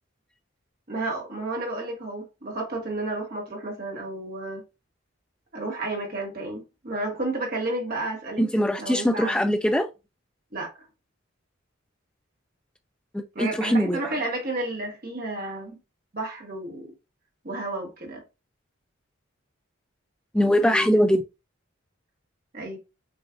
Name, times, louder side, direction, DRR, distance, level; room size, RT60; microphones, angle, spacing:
voice 1, 0.9-4.6 5.5-8.4 8.8-9.4 10.5-10.9 13.3-15.8 16.1-16.9 17.4-18.2 20.6-20.9 22.5-22.8, right 2 dB, 45° right, 1.3 m, -32 dB
voice 2, 8.4-9.9 13.1-14.1 20.3-21.2, equal, 5° left, 0.3 m, -22 dB
6.1 x 2.4 x 2.5 m
head